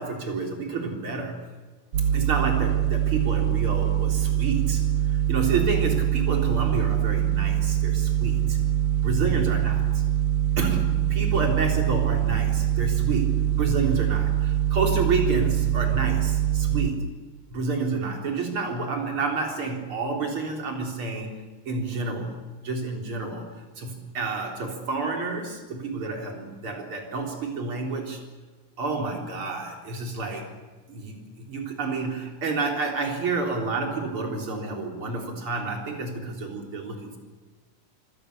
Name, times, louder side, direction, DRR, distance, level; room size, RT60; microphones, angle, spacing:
voice 1, 0.0-1.4 2.1-8.6 9.0-10.0 10.6-17.0 17.5-23.5 23.8-28.2 28.8-30.5 30.9-37.2, right 3 dB, 35° right, 2 dB, 4.4 m, -29 dB
sound 1, 1.9-16.9, right 11 dB, 70° right, 1.5 m, -24 dB
26.0 x 25.0 x 6.9 m, 1.3 s
omnidirectional pair, 4.1 m